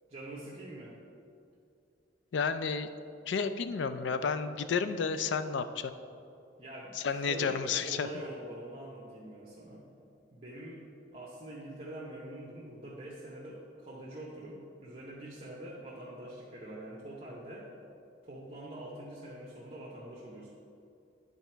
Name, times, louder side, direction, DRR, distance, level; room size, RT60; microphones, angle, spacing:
voice 1, 0.1-0.9 6.6-9.8 10.3-10.8 11.1-17.7 18.2-20.5, right 1 dB, 35° right, -4 dB, 0.9 m, -45 dB
voice 2, 2.3-2.9 3.3-5.9 7.0-8.1, left 5 dB, 85° left, 11 dB, 0.4 m, -31 dB
10.5 x 4.2 x 4.5 m, 2.5 s
head